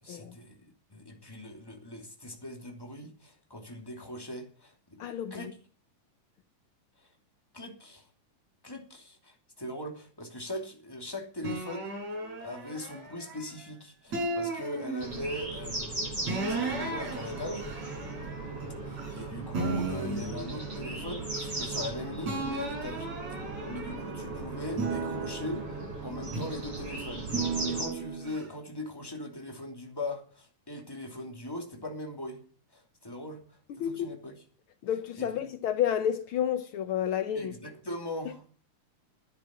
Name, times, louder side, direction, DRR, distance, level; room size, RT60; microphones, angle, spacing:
voice 1, 0.0-5.0 5.3-5.5 7.5-8.1 8.6-11.9 12.4-17.7 18.8-23.1 23.7-32.4 32.7-34.4 35.2-35.5 37.3-38.5, left 1 dB, 10° left, 2.3 m, -40 dB
voice 2, 5.0-5.5 33.8-34.1 34.8-37.5, left 9 dB, 90° left, 1.1 m, -30 dB
sound 1, 11.4-13.6 14.1-15.5 16.3-19.2 19.5-21.9 22.2-24.2 24.7-26.7 27.3-28.4, right 3 dB, 60° right, 6.1 m, -35 dB
sound 2, 15.0-27.9, right 2 dB, 45° right, 8.7 m, -38 dB
11.0 x 10.0 x 7.0 m
omnidirectional pair, 3.5 m